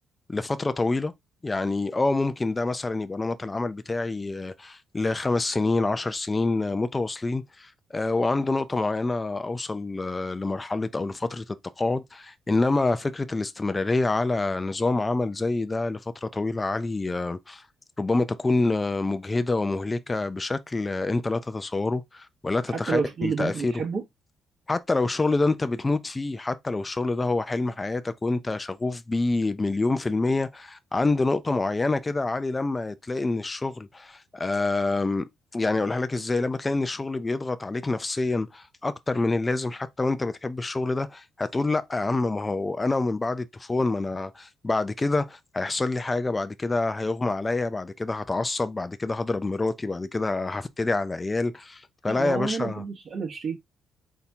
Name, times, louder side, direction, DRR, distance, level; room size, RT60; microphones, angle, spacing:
voice 1, 0.3-1.1 1.4-17.6 18.0-23.8 24.7-35.2 35.5-52.8, left 3 dB, 20° left, 0.5 m, -27 dB
voice 2, 22.7-24.0 52.1-53.6, right 5 dB, 50° right, 1.2 m, -29 dB
4.2 x 2.8 x 3.5 m
cardioid pair, 90°, 0 cm